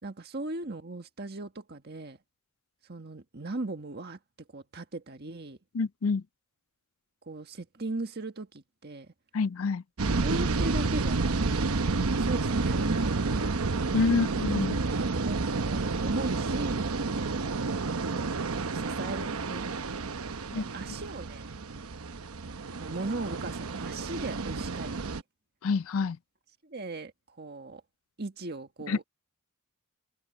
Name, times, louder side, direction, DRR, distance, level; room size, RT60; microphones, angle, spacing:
voice 1, 0.0-2.2 2.9-5.6 7.2-9.1 10.2-11.7 12.2-13.4 13.9-14.2 15.0-16.9 17.9-19.7 20.5-21.5 22.8-25.2 26.6-27.8 28.2-29.0, right 2 dB, 50° right, 1.6 m, -38 dB
voice 2, 5.7-6.2 9.3-9.8 13.9-14.8 20.5-20.6 25.6-26.2 28.9-29.0, left 4 dB, 70° left, 0.4 m, -27 dB
sound 1, 10.0-25.2, right 3 dB, 80° right, 0.9 m, -30 dB
open air
head